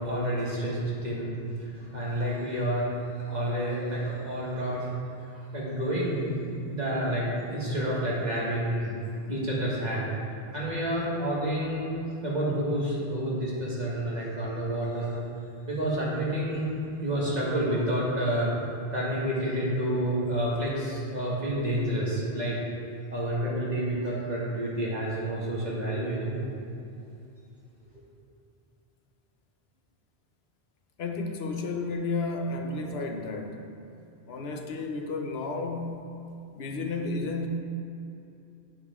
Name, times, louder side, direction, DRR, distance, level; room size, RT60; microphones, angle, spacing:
voice 1, 0.0-2.9 3.3-4.9 5.2-6.4 6.7-10.1 10.5-11.9 12.2-15.2 15.7-16.7 17.0-18.5 18.9-22.6 23.1-26.5, right 1 dB, 45° right, -6 dB, 2.1 m, -29 dB
voice 2, 31.0-33.6 34.3-36.0 36.5-37.5, left 3 dB, 80° left, 4 dB, 1.1 m, -32 dB
9.9 x 8.7 x 3.6 m, 2.7 s
omnidirectional pair, 1.0 m